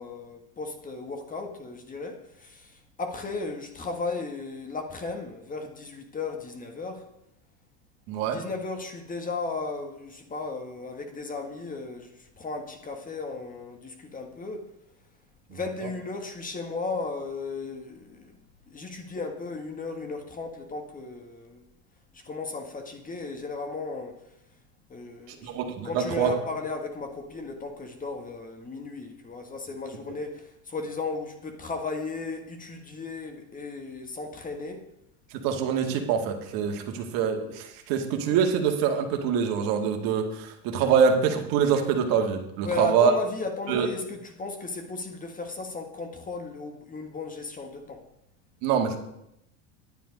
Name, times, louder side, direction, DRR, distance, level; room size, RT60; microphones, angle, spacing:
voice 1, 0.0-7.1 8.3-14.7 15.5-18.4 18.7-21.6 22.1-24.2 24.9-25.5 25.8-34.9 42.6-48.0, left 3 dB, 20° left, 1.6 m, -35 dB
voice 2, 8.1-8.4 15.5-15.6 25.4-26.3 35.3-43.1 43.7-43.9 48.6-49.0, right 7 dB, 60° right, 2.0 m, -25 dB
10.0 x 9.3 x 5.2 m
supercardioid pair, 110°, 39 cm